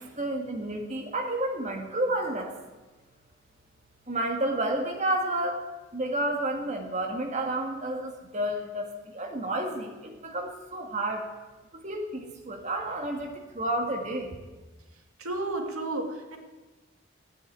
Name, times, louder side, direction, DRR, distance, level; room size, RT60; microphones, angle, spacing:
voice 1, 0.2-2.5 4.1-5.6 5.9-11.2 11.7-14.4, right 1 dB, 35° right, 2 dB, 1.8 m, -30 dB
voice 2, 15.2-16.4, right 2 dB, 90° right, 3 dB, 2.3 m, -32 dB
15.0 x 9.5 x 9.3 m, 1.2 s
head